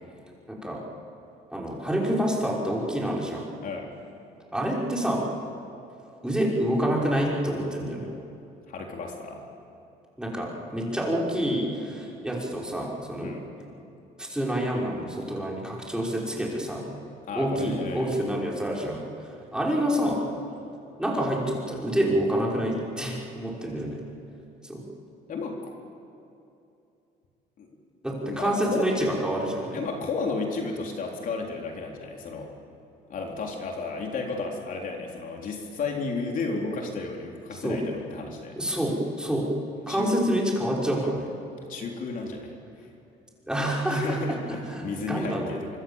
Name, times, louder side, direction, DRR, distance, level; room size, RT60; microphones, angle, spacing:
voice 1, 0.5-0.8 1.5-3.5 4.5-5.3 6.2-8.1 10.2-13.4 14.2-16.9 17.3-20.3 21.0-24.0 24.6-24.8 28.0-29.8 37.5-37.8 38.6-39.5 39.9-41.3 43.5-44.4 44.7-45.5, equal, 5° right, -3 dB, 5.5 m, -27 dB
voice 2, 8.7-9.4 13.2-13.4 17.3-18.2 25.3-25.7 27.6-27.7 28.2-28.9 29.7-32.5 33.1-38.7 39.9-40.1 41.7-42.5 42.8-42.9 43.9-45.7, left 3 dB, 55° left, 0 dB, 3.9 m, -33 dB
25.0 x 24.5 x 7.3 m, 2.7 s
cardioid pair, 110°, 17 cm